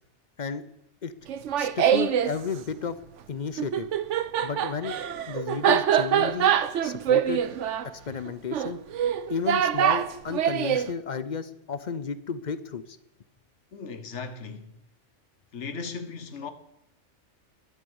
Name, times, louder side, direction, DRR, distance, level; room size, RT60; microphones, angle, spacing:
Laughter, 1.3-2.3 3.6-10.9, right 9 dB, 80° right, 1.1 m, -24 dB
voice 1, 1.6-3.0 3.3-3.9 4.4-5.0 5.3-6.5 6.8-7.4 8.1-8.8 9.3-13.0, left 5 dB, 45° left, 0.7 m, -32 dB
voice 2, 13.7-14.8 15.5-16.5, left 5 dB, 70° left, 1.3 m, -37 dB
12.5 x 11.0 x 7.1 m
omnidirectional pair, 1.2 m